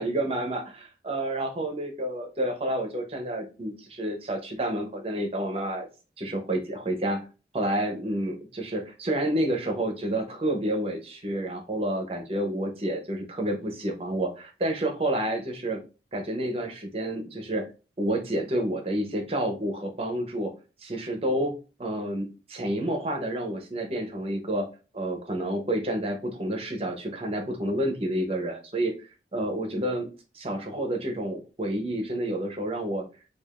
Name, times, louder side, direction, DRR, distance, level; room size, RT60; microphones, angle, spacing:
voice 1, 0.0-5.9 6.2-7.2 7.5-15.8 16.1-17.6 18.0-20.5 20.8-21.5 21.8-24.7 24.9-28.9 29.3-30.1 30.3-33.0, right 1 dB, 35° right, 3 dB, 0.7 m, -29 dB
4.7 x 2.4 x 2.4 m, 0.32 s
head